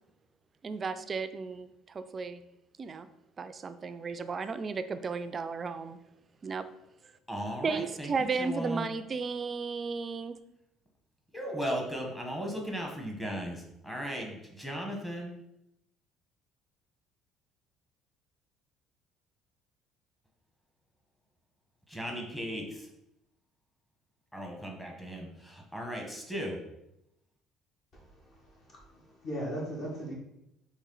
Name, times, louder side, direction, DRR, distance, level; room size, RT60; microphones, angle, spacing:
voice 1, 0.6-2.4 2.8-3.1 3.4-6.0 6.4-6.7 7.0-7.1 7.6-10.4, right 4 dB, 30° right, 11 dB, 0.3 m, -34 dB
voice 2, 7.3-8.9 11.3-15.3 21.9-22.9 24.3-26.6, equal, 5° left, 0 dB, 1.0 m, -37 dB
voice 3, 27.9-30.1, equal, 50° left, -2 dB, 1.5 m, -39 dB
4.1 x 3.2 x 3.8 m, 0.84 s
cardioid pair, 110°, 0 cm